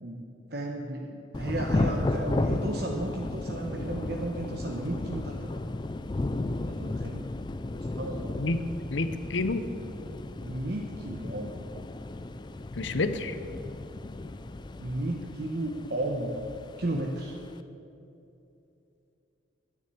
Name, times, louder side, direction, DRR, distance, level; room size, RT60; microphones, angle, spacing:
voice 1, 0.0-5.3 6.7-7.3 7.9-8.5 10.4-11.5 14.8-16.4 16.8-17.4, right 1 dB, 55° right, 0 dB, 1.0 m, -34 dB
Thunder / Rain, 1.3-17.6, left 2 dB, 20° left, 0.3 m, -34 dB
voice 2, 8.4-9.7 12.7-13.4, left 2 dB, 70° left, 11 dB, 0.8 m, -29 dB
10.5 x 9.6 x 8.3 m, 2.8 s
head